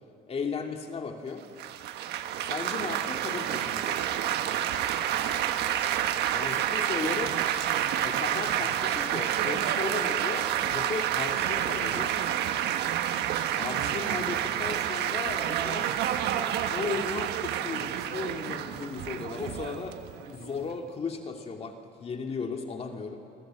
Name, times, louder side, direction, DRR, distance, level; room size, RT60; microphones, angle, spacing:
voice 1, 0.3-1.4 2.4-4.2 6.3-7.3 8.0-12.2 13.6-16.0 16.3-23.2, left 5 dB, 35° left, 3 dB, 2.3 m, -36 dB
Laughter / Applause / Chatter, 1.6-20.7, right 10 dB, 80° right, 1.4 m, -29 dB
27.0 x 24.5 x 7.7 m, 2.5 s
cardioid pair, 110°, 17 cm